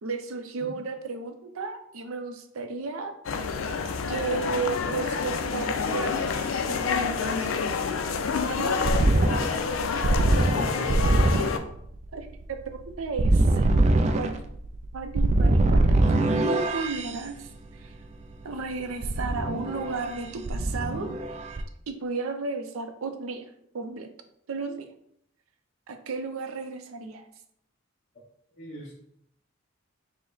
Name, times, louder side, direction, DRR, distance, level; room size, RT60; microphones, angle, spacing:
voice 1, 0.0-3.2 4.1-7.6 8.4-8.8 12.1-13.7 14.1-14.4 14.9-15.8 16.1-18.0 18.4-21.1 21.9-23.5 23.7-24.1 24.5-24.9 25.9-27.3, right 4 dB, 85° right, 7 dB, 0.5 m, -34 dB
sound 1, 3.2-11.6, left 5 dB, 70° left, 0.4 m, -28 dB
sound 2, 8.2-17.1 19.0-20.2 20.5-21.6, right 2 dB, 35° right, 0.3 m, -23 dB
voice 2, 10.5-11.1 28.5-29.0, right 1 dB, 35° left, -5 dB, 0.8 m, -35 dB
4.9 x 2.1 x 3.9 m, 0.72 s
head